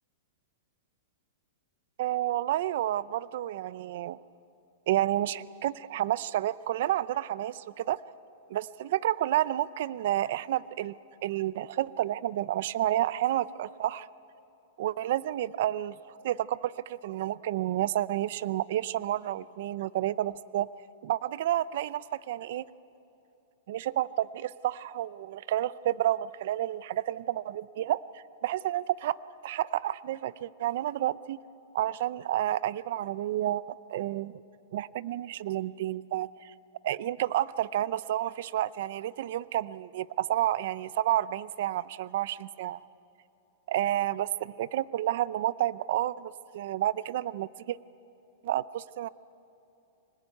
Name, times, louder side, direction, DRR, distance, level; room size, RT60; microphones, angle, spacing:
voice 1, 2.0-4.2 4.9-8.0 8.5-10.9 11.2-14.1 14.8-20.7 21.0-22.6 23.7-28.1 28.4-29.2 29.4-31.4 31.7-33.6 33.9-34.4 34.7-36.5 36.8-42.8 43.7-47.8 48.4-49.1, right 13 dB, 60° right, 18 dB, 0.5 m, -30 dB
24.5 x 19.5 x 9.3 m, 2.9 s
supercardioid pair, 150°, 0 cm